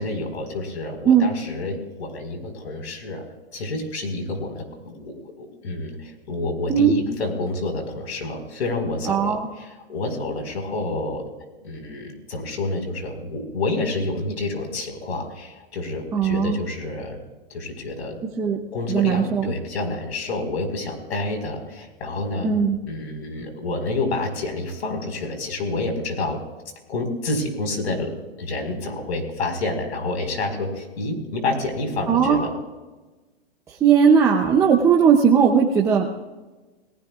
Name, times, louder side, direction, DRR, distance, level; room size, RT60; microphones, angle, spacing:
voice 1, 0.0-3.2 3.5-11.2 11.6-17.2 17.5-18.2 18.7-22.5 22.8-26.4 26.9-28.1 28.4-32.5, left 2 dB, 90° left, 4 dB, 4.9 m, -28 dB
voice 2, 9.1-9.5 16.1-16.6 18.4-18.6 18.9-19.5 22.4-22.8 32.1-32.4 33.7-36.1, right 7 dB, 10° right, -1 dB, 0.6 m, -18 dB
28.0 x 18.5 x 2.4 m, 1.2 s
hypercardioid pair, 160°, 32 cm